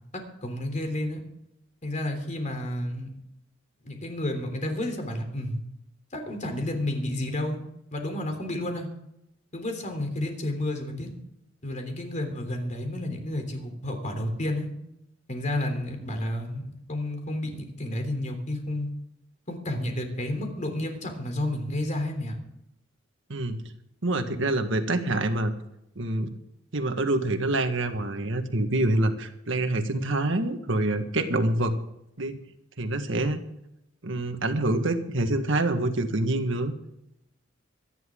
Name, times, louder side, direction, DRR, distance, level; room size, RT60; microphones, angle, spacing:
voice 1, 0.4-1.2 1.8-3.1 3.8-5.6 6.1-7.6 7.9-8.9 9.5-11.1 11.6-14.7 15.3-18.9 19.5-22.4, left 1 dB, 40° left, 4 dB, 3.4 m, -31 dB
voice 2, 23.3-23.6 24.0-25.5 26.0-26.4 26.7-31.8 32.2-32.4 32.8-33.4 34.0-36.7, right 2 dB, 70° right, 7 dB, 1.7 m, -26 dB
25.0 x 11.0 x 3.8 m, 0.82 s
head